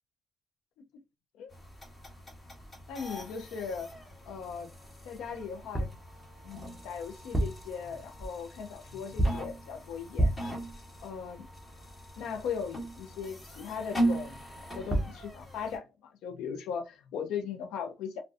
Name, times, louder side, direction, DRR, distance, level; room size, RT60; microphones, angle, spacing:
sound 1, 1.5-15.8, right 1 dB, 30° left, 1.3 m, -39 dB
voice 1, 2.9-3.9 4.2-4.7 5.0-5.9 6.4-10.3 11.0-11.5 12.2-18.2, left 6 dB, 90° left, 0.4 m, -38 dB
sound 2, 5.7-6.1 7.2-7.7 9.2-9.6 10.2-10.6 14.6-14.7 14.9-15.2, right 1 dB, 10° right, 0.5 m, -28 dB
2.5 x 2.2 x 2.3 m
cardioid pair, 90°, 0 cm